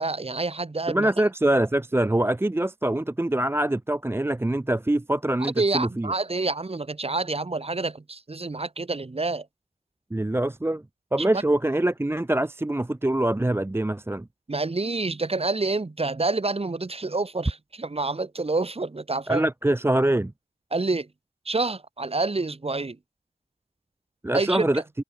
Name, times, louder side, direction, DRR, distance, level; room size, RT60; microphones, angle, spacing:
voice 1, 0.0-1.1 5.6-9.5 11.3-11.4 14.5-19.4 20.7-21.1 21.5-23.0 24.3-24.8, right 3 dB, 30° right, 1.9 m, -28 dB
voice 2, 0.9-6.1 10.1-10.8 11.1-14.3 19.3-20.3 24.2-24.8, right 1 dB, 15° right, 0.7 m, -24 dB
cardioid pair, 55°, 19 cm